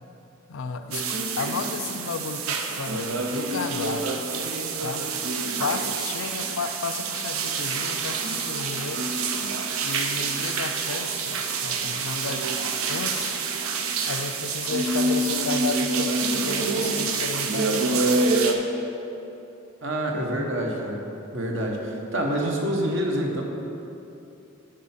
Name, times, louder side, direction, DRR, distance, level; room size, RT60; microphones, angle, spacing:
voice 1, 0.5-1.0 1.4-4.2 4.8-5.0 5.6-9.0 9.8-12.5 12.9-13.4 14.1-18.2, left 4 dB, 70° left, 8 dB, 0.5 m, -33 dB
sound 1, 0.9-18.5, right 4 dB, 80° right, 0.6 m, -27 dB
voice 2, 19.8-21.0 21.3-23.4, right 1 dB, 60° right, 1 dB, 1.0 m, -27 dB
10.0 x 4.3 x 5.7 m, 2.9 s
head